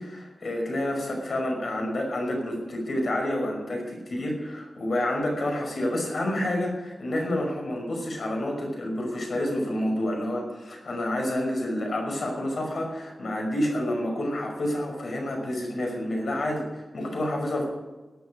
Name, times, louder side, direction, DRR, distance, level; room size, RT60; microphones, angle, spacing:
voice 1, 0.0-17.6, left 1 dB, 65° left, 1 dB, 5.6 m, -29 dB
18.5 x 9.7 x 5.2 m, 1.2 s
wide cardioid pair, 105°, 0 cm